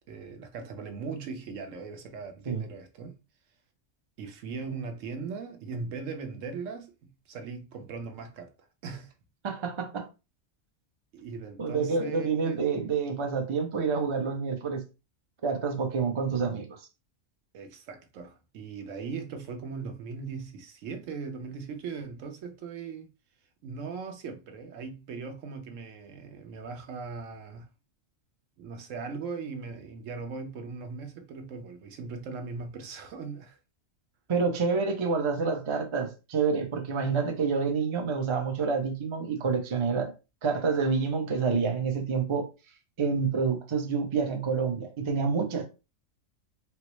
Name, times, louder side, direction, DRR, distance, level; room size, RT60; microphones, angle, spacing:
voice 1, 0.1-3.1 4.2-6.9 7.3-8.5 8.8-9.1 11.1-12.7 17.5-23.1 23.6-27.7 28.6-33.6, right 5 dB, 75° right, 1.0 m, -39 dB
voice 2, 9.4-10.1 11.6-14.8 15.4-16.8 34.3-40.1 40.4-42.5 43.0-45.6, right 5 dB, 40° right, 0.4 m, -28 dB
4.4 x 2.0 x 3.0 m
omnidirectional pair, 1.4 m